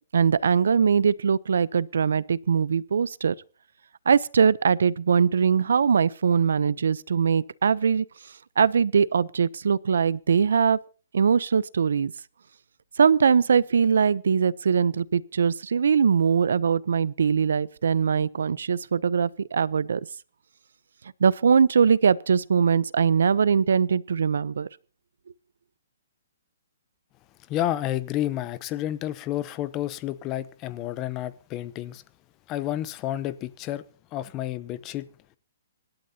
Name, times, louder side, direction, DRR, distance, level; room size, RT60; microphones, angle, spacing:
voice 1, 0.1-3.3 4.1-8.1 8.6-10.8 11.1-12.1 13.0-20.0 21.2-24.7, right 6 dB, 80° right, 0.6 m, -21 dB
voice 2, 27.5-32.0 32.5-33.8 34.1-35.1, left 13 dB, 20° left, 0.6 m, -30 dB
26.5 x 11.5 x 2.8 m
hypercardioid pair, 170°, 0 cm